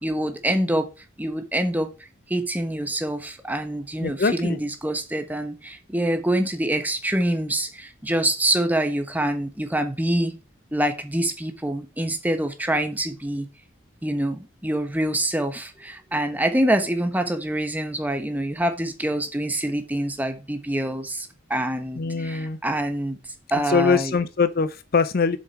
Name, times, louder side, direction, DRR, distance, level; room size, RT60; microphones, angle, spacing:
voice 1, 0.0-0.9 1.2-1.9 2.3-10.4 10.7-13.5 14.0-23.2 23.5-24.2, right 1 dB, 10° right, 1.2 m, -25 dB
voice 2, 4.0-4.6 22.0-22.6 23.7-25.4, left 5 dB, 50° left, 0.5 m, -22 dB
7.4 x 7.3 x 4.7 m
head